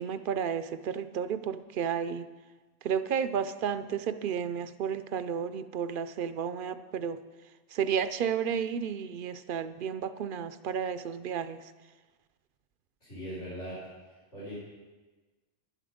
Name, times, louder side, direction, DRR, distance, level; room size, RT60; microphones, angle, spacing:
voice 1, 0.0-2.3 2.8-7.2 7.7-11.7, right 7 dB, 60° right, 12 dB, 0.6 m, -32 dB
voice 2, 13.0-13.8 14.3-14.6, equal, 80° left, -11 dB, 5.2 m, -39 dB
11.0 x 11.0 x 5.0 m, 1.3 s
omnidirectional pair, 1.2 m